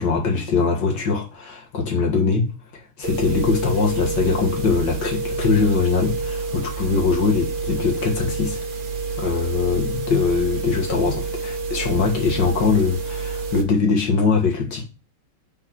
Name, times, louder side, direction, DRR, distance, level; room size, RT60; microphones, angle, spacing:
voice 1, 0.0-2.5 3.0-8.6 9.2-14.8, left 4 dB, 60° left, 2.1 m, -22 dB
sound 1, 3.0-13.6, right 4 dB, 70° right, 0.4 m, -28 dB
5.3 x 3.8 x 5.8 m
omnidirectional pair, 2.3 m